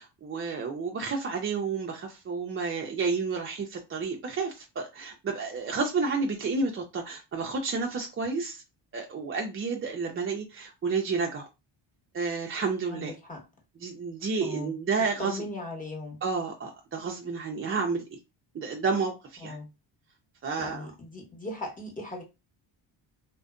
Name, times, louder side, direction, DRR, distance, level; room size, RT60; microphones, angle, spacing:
voice 1, 0.0-8.6 8.9-11.5 12.1-13.2 13.8-15.4 16.2-18.2 18.5-19.6 20.4-20.9, right 4 dB, 30° right, 0.4 m, -31 dB
voice 2, 12.9-13.4 14.4-14.7 15.2-16.2 19.4-19.7 20.6-22.2, left 2 dB, 15° left, 1.0 m, -38 dB
2.5 x 2.1 x 2.4 m
cardioid pair, 70°, 50 cm